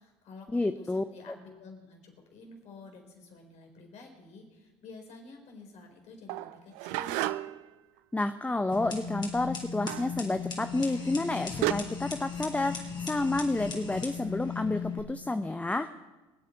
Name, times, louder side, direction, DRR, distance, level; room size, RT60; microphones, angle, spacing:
voice 1, 0.0-7.4, left 3 dB, 55° left, 2 dB, 4.6 m, -50 dB
voice 2, 0.5-1.0 8.1-15.9, left 2 dB, 10° left, 10 dB, 0.7 m, -30 dB
sound 1, 6.3-7.7 9.9-10.2 11.2-11.3 11.6-11.7, right 17 dB, 70° right, 0.6 m, -31 dB
sound 2, 8.7-15.0, left 6 dB, 35° left, 3.9 m, -37 dB
25.5 x 8.6 x 4.8 m, 1.1 s
hypercardioid pair, 70°, 14 cm